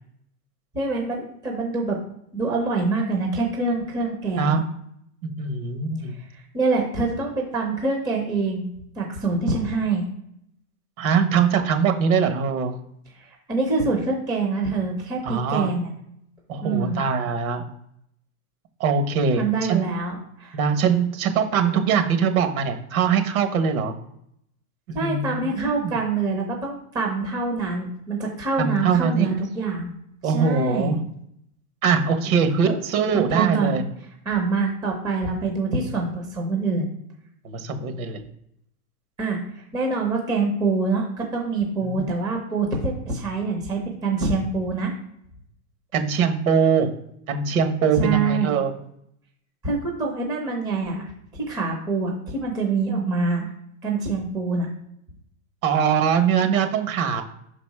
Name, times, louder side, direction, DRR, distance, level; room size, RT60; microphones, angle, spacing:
voice 1, 0.7-2.0 2.3-4.6 6.2-8.7 9.0-10.0 13.2-15.9 16.6-17.0 19.4-20.6 24.9-29.9 30.2-30.9 32.6-32.8 33.3-33.7 34.3-36.9 39.2-44.9 48.0-48.5 49.6-51.0 51.3-53.5 53.8-54.7, right 3 dB, 10° right, 1 dB, 0.6 m, -25 dB
voice 2, 5.4-6.2 11.0-12.7 15.2-15.7 16.5-17.6 18.8-19.8 20.5-23.9 24.9-25.9 28.6-29.3 30.2-31.0 31.8-33.8 37.4-38.2 41.8-42.0 45.9-46.9 47.3-48.7 55.6-57.2, right 6 dB, 65° right, 7 dB, 1.4 m, -22 dB
6.0 x 4.1 x 4.7 m, 0.74 s
supercardioid pair, 165°, 45 cm